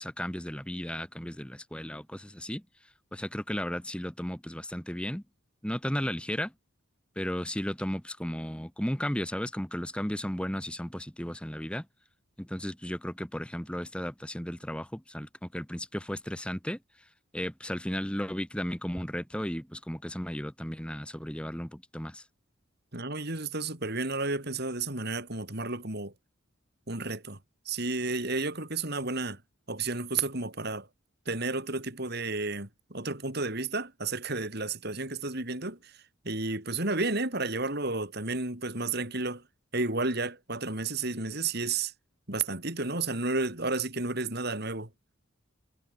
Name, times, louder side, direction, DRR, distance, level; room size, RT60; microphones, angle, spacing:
voice 1, 0.0-2.6 3.1-5.2 5.6-6.5 7.1-11.8 12.4-16.8 17.3-22.2, equal, 5° left, 1.6 m, -34 dB
voice 2, 22.9-26.1 26.9-27.4 27.7-29.4 29.7-30.9 31.3-35.9 36.2-39.4 39.7-41.9 42.3-44.9, right 3 dB, 50° right, 3.8 m, -32 dB
head